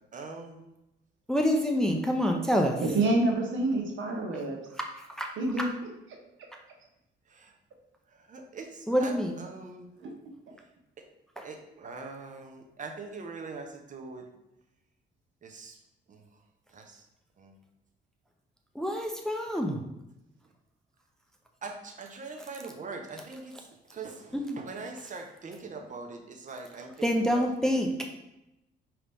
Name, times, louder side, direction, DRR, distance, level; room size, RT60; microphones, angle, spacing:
voice 1, 0.1-0.6 7.3-7.5 8.3-9.9 11.4-14.2 15.4-15.7 16.1-16.2 16.7-17.0 17.4-17.5 21.6-23.5 23.9-27.4, right 4 dB, 40° right, 3 dB, 0.8 m, -42 dB
voice 2, 1.3-2.8 4.8-5.3 8.9-9.4 11.4-11.5 18.7-19.8 24.3-24.4 27.0-27.9, equal, 5° left, 2 dB, 0.5 m, -27 dB
voice 3, 2.8-4.6 5.4-5.7 10.0-10.1, right 2 dB, 75° right, 1 dB, 1.0 m, -27 dB
5.1 x 3.0 x 3.4 m, 0.90 s
cardioid pair, 90°, 20 cm